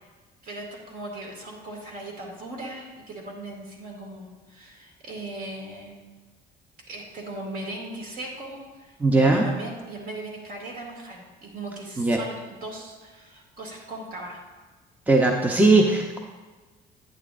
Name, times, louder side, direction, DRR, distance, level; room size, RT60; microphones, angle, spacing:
voice 1, 0.4-6.0 6.9-14.4, right 1 dB, 55° right, -1 dB, 2.3 m, -38 dB
voice 2, 9.0-9.5 12.0-12.2 15.1-16.2, right 2 dB, 10° right, 2 dB, 0.6 m, -19 dB
10.5 x 8.5 x 2.5 m, 1.3 s
cardioid pair, 110°, 17 cm